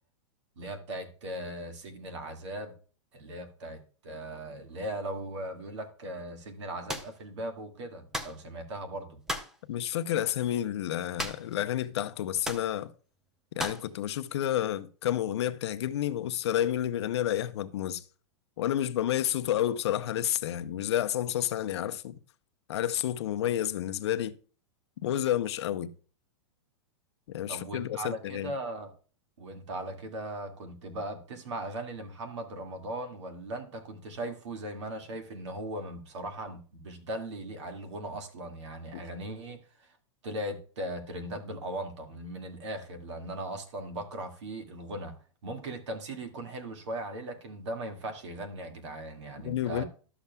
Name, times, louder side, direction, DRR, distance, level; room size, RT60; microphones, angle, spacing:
voice 1, 0.6-2.8 3.1-9.2 27.5-28.9 29.4-40.0 40.2-49.8, right 1 dB, 65° right, 2.1 m, -38 dB
sound 1, 6.9-7.1 8.1-8.4 9.3-9.6 11.2-11.6 11.8-11.9 12.4-12.7 13.6-13.9, equal, 5° right, 0.4 m, -35 dB
voice 2, 9.7-12.9 13.5-18.0 18.6-22.2 22.7-24.3 25.0-25.9 27.3-28.5 38.9-39.0 49.4-49.8, left 11 dB, 60° left, 0.7 m, -30 dB
12.0 x 7.1 x 2.3 m
supercardioid pair, 175°, 16 cm